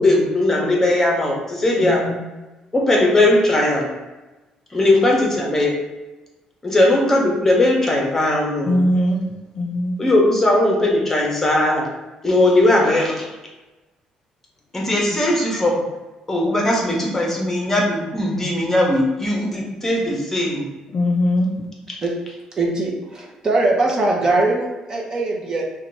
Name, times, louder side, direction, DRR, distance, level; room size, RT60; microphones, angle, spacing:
voice 1, 0.0-2.0 2.7-3.9 4.7-5.7 6.6-8.8 10.0-11.9 12.2-13.2 14.7-15.8 16.3-20.6, left 1 dB, 15° left, -2 dB, 0.8 m, -18 dB
voice 2, 1.8-2.2 8.6-9.3 9.5-10.0 17.3-17.4 20.9-21.7, left 1 dB, 45° left, 1 dB, 0.4 m, -21 dB
voice 3, 22.6-25.6, right 2 dB, 35° right, -1 dB, 0.7 m, -21 dB
2.8 x 2.3 x 4.1 m, 1.1 s
cardioid pair, 115°, 2 cm